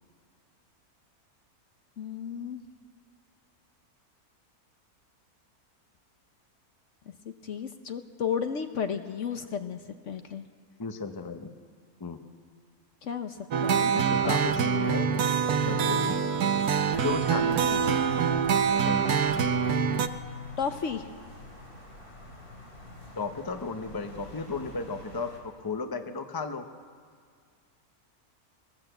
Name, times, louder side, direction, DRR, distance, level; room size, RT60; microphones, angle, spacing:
voice 1, 2.0-2.6 7.1-9.8 10.1-10.4 13.0-13.9 20.6-21.1, left 7 dB, 60° left, 7 dB, 1.1 m, -33 dB
voice 2, 10.8-11.5 12.0-12.2 13.9-15.1 15.7-16.2 17.0-18.0 18.8-19.0 23.2-25.3 25.6-26.6, left 4 dB, 20° left, 7 dB, 0.8 m, -34 dB
sound 1, 13.5-20.1, right 6 dB, 80° right, 1.4 m, -25 dB
sound 2, 16.9-25.4, left 1 dB, 80° left, 4.5 m, -47 dB
20.5 x 19.5 x 8.0 m, 2.1 s
omnidirectional pair, 1.6 m